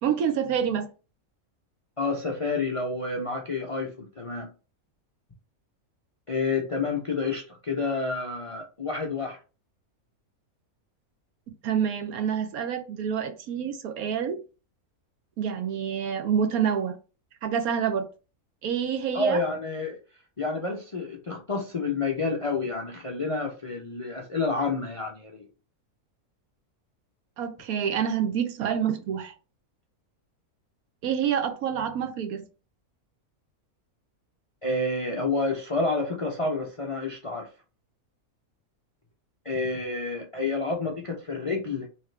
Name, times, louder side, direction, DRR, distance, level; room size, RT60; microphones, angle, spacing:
voice 1, 0.0-0.9 11.6-14.4 15.4-17.0 17.4-18.1 18.6-19.4 27.4-29.3 31.0-32.4, right 8 dB, 75° right, 1.2 m, -27 dB
voice 2, 2.0-4.5 6.3-9.4 19.1-20.0 20.4-25.5 34.6-37.5 39.4-41.9, left 3 dB, 45° left, 0.4 m, -29 dB
3.6 x 3.2 x 3.2 m
omnidirectional pair, 1.5 m